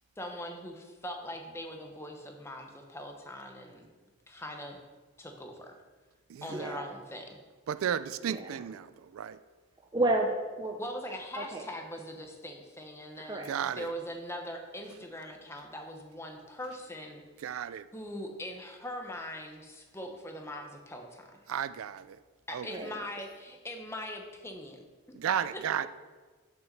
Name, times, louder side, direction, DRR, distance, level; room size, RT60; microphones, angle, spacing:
voice 1, 0.2-3.9 4.3-4.8 5.2-5.8 6.4-7.4 10.8-17.6 17.9-21.4 22.5-24.8 25.1-25.2 25.5-25.6, equal, 10° left, 3 dB, 0.8 m, -41 dB
voice 2, 6.5-6.8 8.3-8.5 9.9-10.8 11.4-11.6 13.3-13.5 22.7-22.9, right 2 dB, 20° right, 1 dB, 0.5 m, -30 dB
voice 3, 7.7-8.9 9.1-9.4 13.5-13.9 17.4-17.8 21.5-22.2 22.5-22.7 25.2-25.9, right 9 dB, 80° right, 14 dB, 0.3 m, -33 dB
6.3 x 6.0 x 6.5 m, 1.4 s
head